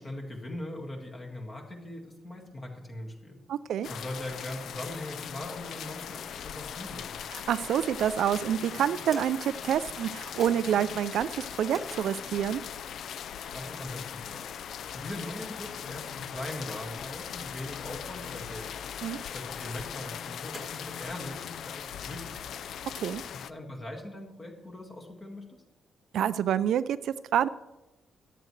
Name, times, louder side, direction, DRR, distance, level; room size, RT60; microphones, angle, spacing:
voice 1, 0.0-3.4 3.9-7.1 13.5-14.5 14.9-18.7 19.3-22.5 23.3-25.6, left 1 dB, 25° left, 1 dB, 1.8 m, -40 dB
voice 2, 3.5-3.9 7.3-12.6 19.0-19.2 23.0-23.2 26.1-27.5, right 9 dB, 70° right, 15 dB, 0.3 m, -27 dB
sound 1, 3.8-23.5, left 8 dB, 60° left, 0.4 m, -40 dB
sound 2, 7.7-8.2 8.9-9.6 10.4-10.7 11.7-12.0 12.9-13.0 13.6-13.8 14.3-14.5 15.1-15.2 15.8-16.2 16.9-17.3 18.1-18.7 19.2-19.7 20.4-20.9, equal, ahead, 2.2 m, -47 dB
14.0 x 11.0 x 3.2 m, 1.0 s
wide cardioid pair, 180°, 0 cm